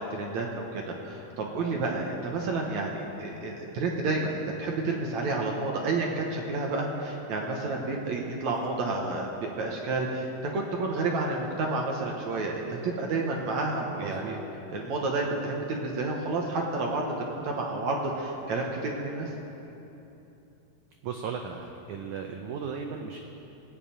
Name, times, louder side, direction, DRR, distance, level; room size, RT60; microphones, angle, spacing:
voice 1, 0.0-10.3 10.5-14.4 14.7-19.3, right 3 dB, 65° right, 0 dB, 2.0 m, -30 dB
voice 2, 14.0-14.4 21.0-23.2, right 6 dB, 85° right, 3 dB, 1.7 m, -36 dB
19.0 x 6.7 x 9.0 m, 3.0 s
omnidirectional pair, 4.5 m